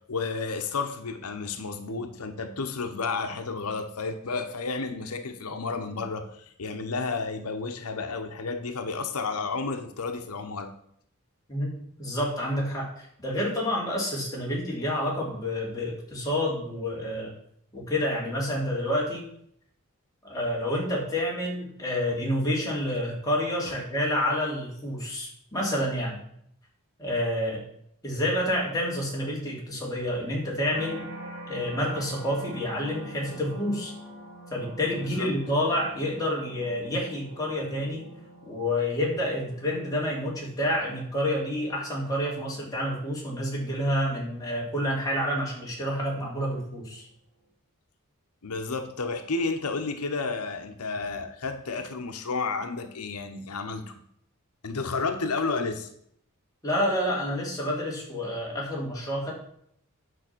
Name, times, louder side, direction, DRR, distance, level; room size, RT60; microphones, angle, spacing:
voice 1, 0.1-10.7 35.0-35.3 48.4-53.9 54.6-55.9, left 4 dB, 90° left, 6 dB, 0.9 m, -31 dB
voice 2, 11.5-17.3 17.7-19.3 20.3-26.2 27.0-27.6 28.0-31.0 31.5-33.9 34.5-38.0 38.4-47.1 56.6-59.3, left 1 dB, 15° left, -4 dB, 3.2 m, -28 dB
sound 1, 30.7-45.9 46.4-46.8, right 1 dB, 65° right, 3.4 m, -46 dB
9.3 x 6.5 x 6.1 m, 0.69 s
head